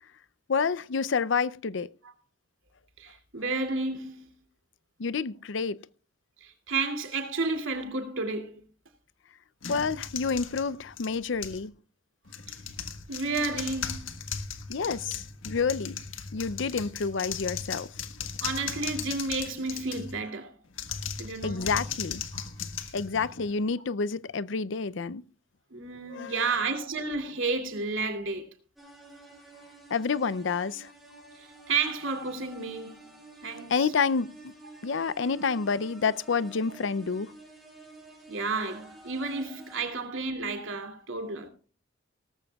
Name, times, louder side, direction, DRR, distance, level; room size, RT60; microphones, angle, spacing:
voice 1, 0.5-1.9 5.0-5.8 9.7-11.7 14.7-16.0 16.3-17.9 21.4-22.2 22.9-25.2 26.1-26.4 29.9-30.9 33.7-34.5 34.8-37.3, left 5 dB, 70° left, 0.5 m, -29 dB
voice 2, 3.0-4.3 6.4-8.6 12.5-12.6 13.1-14.1 18.4-20.6 21.2-21.7 22.3-22.5 22.8-22.9 25.7-28.5 31.1-33.1 33.4-33.9 38.3-41.5, right 3 dB, 85° right, 2.6 m, -32 dB
sound 1, 9.6-11.7 12.3-20.2 20.7-23.6, left 7 dB, 85° left, 1.5 m, -37 dB
sound 2, 28.8-39.8, right 2 dB, ahead, 6.9 m, -50 dB
18.5 x 14.0 x 2.3 m
head